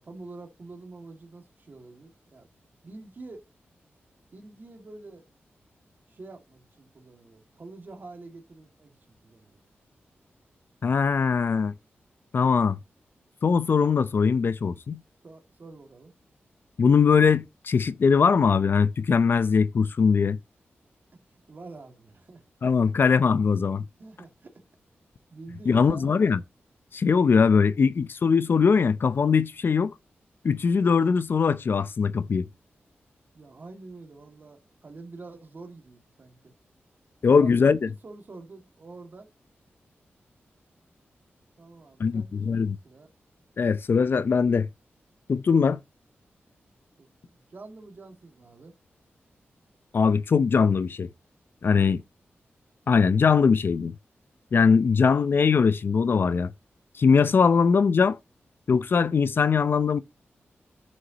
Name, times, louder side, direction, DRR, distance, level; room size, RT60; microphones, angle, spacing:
voice 1, 0.0-2.5 2.8-3.5 4.3-5.3 6.1-9.0 9.2-9.6 15.2-16.1 21.5-22.4 24.0-24.5 25.3-26.4 33.3-36.5 37.2-37.5 37.9-39.3 41.6-43.1 47.0-47.1 47.5-48.7, right 3 dB, 45° right, 2.1 m, -46 dB
voice 2, 10.8-11.7 12.3-12.8 13.4-15.0 16.8-20.4 22.6-23.8 25.7-26.4 26.9-29.9 30.4-32.5 37.2-37.9 42.0-42.8 43.6-44.7 45.3-45.8 49.9-51.1 51.6-52.0 52.9-53.9 54.5-56.5 57.0-58.2 58.7-60.0, left 5 dB, 55° left, 0.5 m, -21 dB
9.4 x 6.5 x 2.9 m
wide cardioid pair, 115°, 4 cm